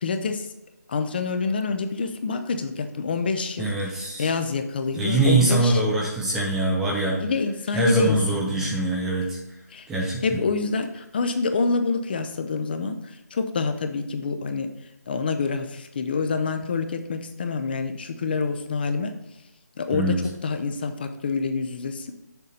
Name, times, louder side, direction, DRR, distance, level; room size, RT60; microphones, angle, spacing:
voice 1, 0.0-0.5 0.9-3.7 4.2-5.8 7.2-8.8 9.7-9.9 10.2-13.0 13.3-14.7 15.1-19.1 19.8-20.1 20.4-22.1, left 4 dB, 35° left, 7 dB, 0.6 m, -27 dB
voice 2, 3.6-4.3 4.9-7.2 7.7-9.4 9.9-10.4 19.9-20.2, right 2 dB, 5° right, -3 dB, 0.5 m, -23 dB
7.0 x 6.8 x 4.1 m, 0.94 s
figure-of-eight pair, 160°, 9 cm